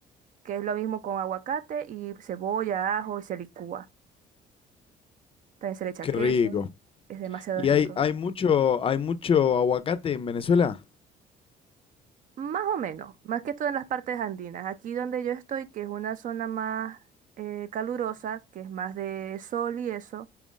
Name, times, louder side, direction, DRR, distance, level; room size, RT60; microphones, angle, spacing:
voice 1, 0.4-3.9 5.6-6.6 7.1-8.0 12.4-17.0 17.4-20.3, right 9 dB, 50° right, 0.4 m, -32 dB
voice 2, 6.0-6.7 7.6-10.8, left 7 dB, 35° left, 0.4 m, -24 dB
4.3 x 2.4 x 3.7 m
cardioid pair, 110°, 17 cm